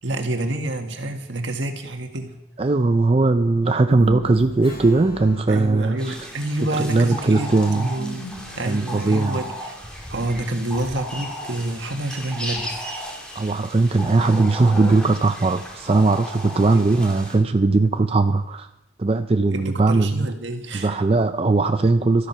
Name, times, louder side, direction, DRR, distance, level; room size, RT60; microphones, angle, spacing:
voice 1, 0.0-2.4 5.5-8.3 8.6-12.9 16.7-16.9 19.5-21.0, right 1 dB, 70° right, 5 dB, 1.7 m, -28 dB
voice 2, 2.6-6.2 6.8-7.9 8.7-9.4 13.3-18.7 19.0-20.3 20.7-22.3, right 3 dB, 30° right, 9 dB, 0.4 m, -19 dB
sound 1, 3.8-6.1 7.5-10.0, equal, 65° left, 1.5 m, -37 dB
Strum, 4.6-9.5, right 1 dB, 30° left, 7.4 m, -47 dB
sound 2, 6.0-17.3, equal, 5° left, 2.4 m, -35 dB
13.0 x 12.0 x 5.7 m, 0.83 s
head